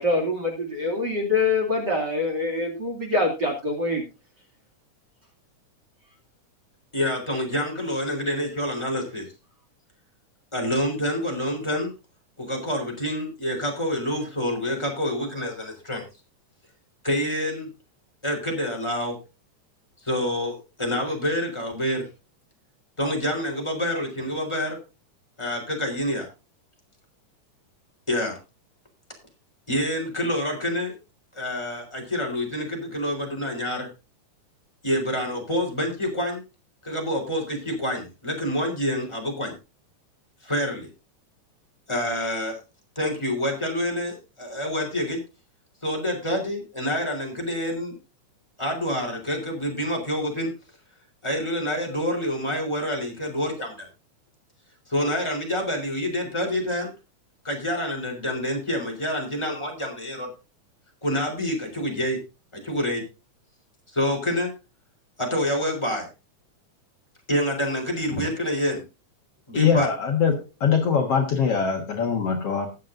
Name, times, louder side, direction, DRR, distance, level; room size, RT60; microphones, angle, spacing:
voice 1, 0.0-4.0, left 2 dB, 35° right, 0 dB, 2.9 m, -25 dB
voice 2, 6.9-9.3 10.5-11.9 12.4-16.0 17.0-17.7 18.2-19.2 20.0-22.0 23.0-24.8 25.4-26.3 28.1-28.4 29.7-30.9 31.3-33.9 34.8-36.4 36.8-39.5 40.4-40.9 41.9-42.6 43.0-45.2 45.8-47.9 48.6-50.5 51.2-53.9 54.9-56.9 57.4-60.3 61.0-62.2 62.5-63.0 63.9-64.5 65.2-66.1 67.3-68.8 69.5-69.9, equal, 10° left, 1 dB, 3.7 m, -27 dB
voice 3, 69.5-72.7, left 6 dB, 55° left, 3 dB, 2.2 m, -22 dB
20.5 x 7.5 x 2.6 m, 0.29 s
omnidirectional pair, 3.6 m